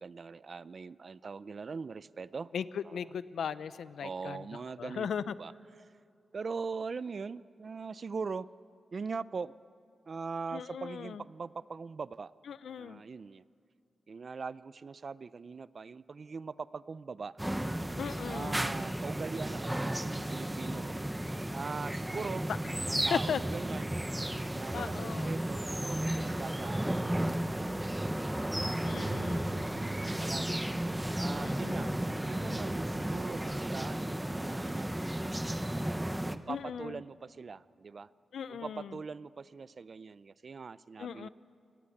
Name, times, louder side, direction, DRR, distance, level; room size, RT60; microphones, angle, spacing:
voice 1, 0.0-2.5 2.8-3.0 4.0-5.9 6.3-8.5 8.9-9.5 10.1-12.3 12.8-13.4 14.1-17.3 18.2-21.0 21.5-23.9 24.5-27.9 28.4-30.6 31.2-35.6 36.2-38.1 38.5-41.3, right 5 dB, 50° right, 17 dB, 0.5 m, -42 dB
voice 2, 2.5-4.4 4.8-5.3 10.5-11.2 12.5-13.0 18.0-18.7 23.1-23.4 24.7-25.4 28.8-29.6 31.4-32.0 36.5-37.0 38.3-38.9 41.0-41.3, left 7 dB, 85° left, 15 dB, 0.7 m, -37 dB
sound 1, 17.4-36.4, right 1 dB, 10° right, 0.9 m, -34 dB
27.5 x 18.5 x 8.6 m, 2.4 s
cardioid pair, 85°, 0 cm